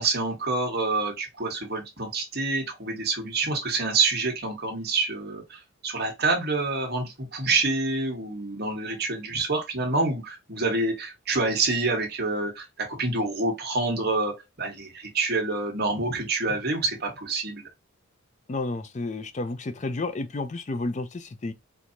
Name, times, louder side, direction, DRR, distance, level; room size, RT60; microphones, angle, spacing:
voice 1, 0.0-17.6, right 3 dB, 45° right, 1.3 m, -27 dB
voice 2, 18.5-21.5, left 2 dB, 35° left, 0.4 m, -31 dB
4.4 x 2.7 x 2.6 m
head